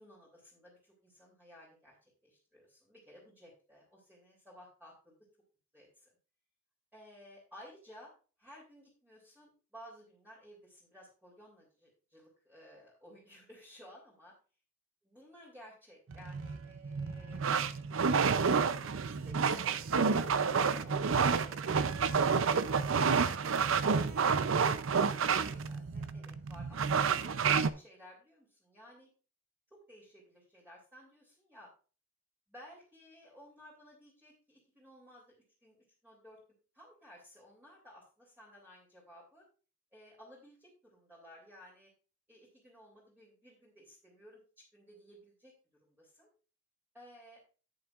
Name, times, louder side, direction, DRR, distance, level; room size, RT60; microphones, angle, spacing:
voice 1, 0.0-5.1 5.7-6.1 6.9-8.1 8.4-14.3 15.1-17.4 18.0-20.3 20.6-25.1 25.3-29.1 29.7-31.7 32.5-36.4 36.7-39.4 39.9-41.9 42.3-44.4 44.7-45.5 45.8-46.3 46.9-47.4, equal, 10° right, -5 dB, 2.9 m, -56 dB
sound 1, 16.1-27.7, right 5 dB, 90° right, 0.6 m, -29 dB
10.5 x 8.8 x 2.5 m, 0.35 s
head